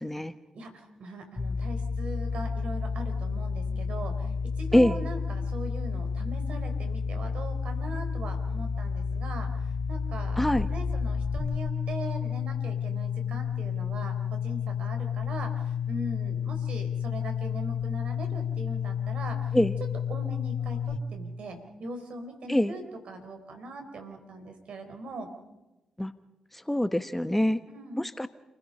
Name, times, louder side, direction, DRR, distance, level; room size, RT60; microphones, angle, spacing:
voice 1, 0.0-0.3 4.7-5.0 10.4-10.7 19.5-19.7 22.5-22.7 26.0-26.1 26.5-27.6 28.0-28.3, left 1 dB, 10° left, 12 dB, 1.1 m, -24 dB
voice 2, 0.5-10.4 10.7-19.6 20.1-20.8 21.1-25.3 27.6-28.1, right 2 dB, 65° right, 6 dB, 4.2 m, -40 dB
sound 1, 1.4-21.0, left 6 dB, 40° left, 1.3 m, -31 dB
29.0 x 16.0 x 5.6 m, 1.0 s
hypercardioid pair, 40°, 2 cm